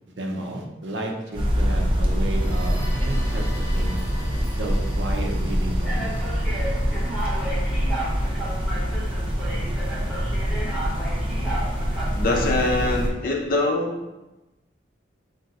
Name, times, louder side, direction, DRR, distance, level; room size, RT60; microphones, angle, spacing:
voice 1, 0.2-3.5 3.7-4.0 4.5-6.1, right 1 dB, 85° right, 1 dB, 0.6 m, -32 dB
sound 1, 1.3-13.1, equal, 30° right, 0.6 m, -25 dB
sound 2, 2.0-7.7, equal, 20° left, 1.0 m, -41 dB
sound 3, 2.9-3.4 4.1-4.3 5.1-5.3 5.8-13.1, right 1 dB, ahead, 0.8 m, -34 dB
voice 2, 12.2-14.0, left 2 dB, 55° left, 0 dB, 0.6 m, -23 dB
3.4 x 2.6 x 4.0 m, 1.0 s
head